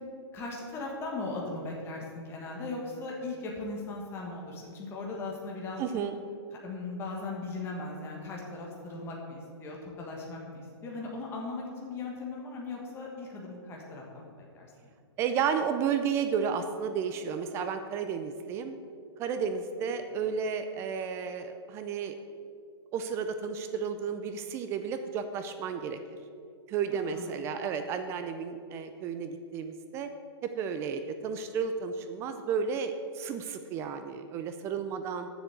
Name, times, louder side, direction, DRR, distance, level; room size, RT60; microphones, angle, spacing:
voice 1, 0.3-5.8 6.6-14.7 27.1-27.3, left 3 dB, 15° left, -2 dB, 1.4 m, -38 dB
voice 2, 5.8-6.1 15.2-18.8 19.2-22.2 22.9-26.0 26.7-30.1 30.4-35.3, right 6 dB, 20° right, 8 dB, 0.4 m, -32 dB
7.0 x 7.0 x 7.8 m, 2.3 s
hypercardioid pair, 155°, 14 cm